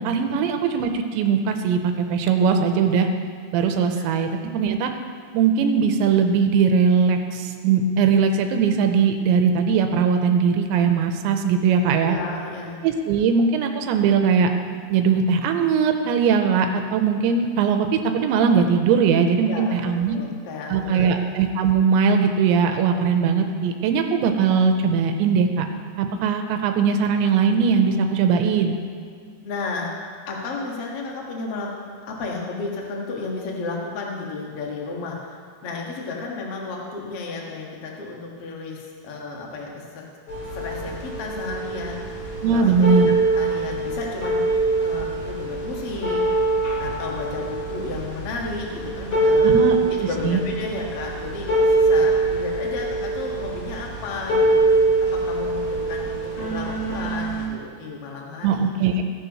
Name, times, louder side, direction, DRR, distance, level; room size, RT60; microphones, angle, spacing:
voice 1, 0.0-3.1 3.5-4.9 5.3-12.2 12.8-14.5 14.9-20.2 20.7-25.7 26.0-28.8 42.4-43.2 49.4-49.8 50.2-50.4 58.4-59.0, right 6 dB, 85° right, 5 dB, 3.0 m, -20 dB
voice 2, 12.0-12.8 19.5-21.2 29.0-29.1 29.4-29.9 30.2-31.7 32.0-40.0 40.5-44.5 44.8-46.2 46.8-58.7, left 3 dB, 65° left, -2 dB, 1.5 m, -33 dB
sound 1, 40.3-57.5, right 2 dB, 40° left, 2.9 m, -23 dB
17.0 x 11.0 x 3.1 m, 2.1 s
omnidirectional pair, 5.3 m